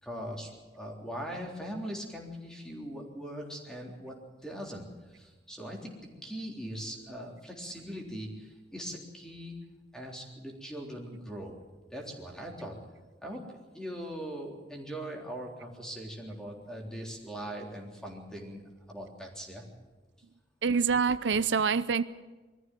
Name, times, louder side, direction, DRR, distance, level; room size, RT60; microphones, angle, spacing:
voice 1, 0.0-4.2 4.4-4.9 5.1-5.9 6.2-9.6 9.9-11.6 11.9-12.8 13.2-18.6 18.9-19.6, equal, 5° left, 0 dB, 3.6 m, -40 dB
voice 2, 20.6-22.0, right 5 dB, 85° right, 14 dB, 0.6 m, -26 dB
21.5 x 14.0 x 9.2 m, 1.2 s
head